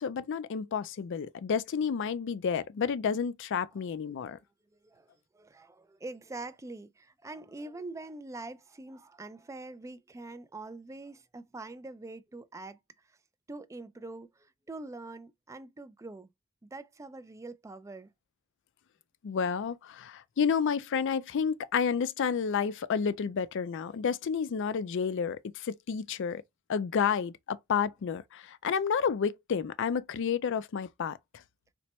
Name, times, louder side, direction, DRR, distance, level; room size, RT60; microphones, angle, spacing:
voice 1, 0.0-4.4 19.2-26.4 26.7-31.2, left 6 dB, 60° left, 0.4 m, -30 dB
voice 2, 4.8-13.1 13.5-16.3 16.6-18.1, right 2 dB, 15° right, 0.3 m, -44 dB
4.2 x 2.1 x 3.0 m
head